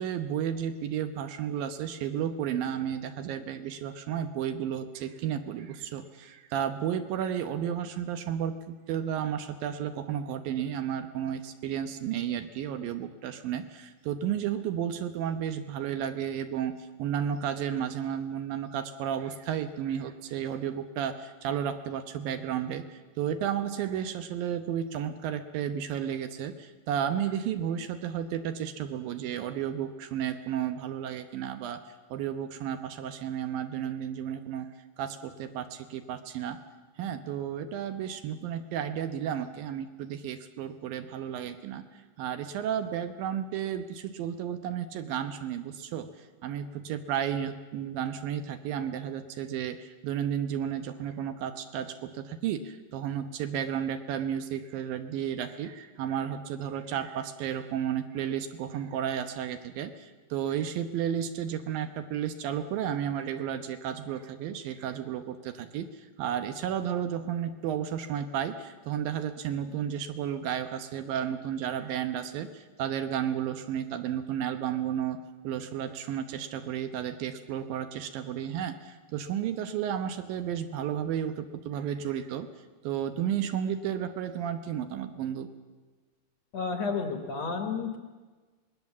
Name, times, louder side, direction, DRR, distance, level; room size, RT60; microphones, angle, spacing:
voice 1, 0.0-31.8 32.1-36.6 37.0-41.9 42.2-82.5 82.8-85.5, right 9 dB, 75° right, 8 dB, 2.6 m, -33 dB
voice 2, 86.5-88.0, left 5 dB, 55° left, 5 dB, 2.1 m, -31 dB
25.5 x 20.0 x 7.3 m, 1.3 s
omnidirectional pair, 4.4 m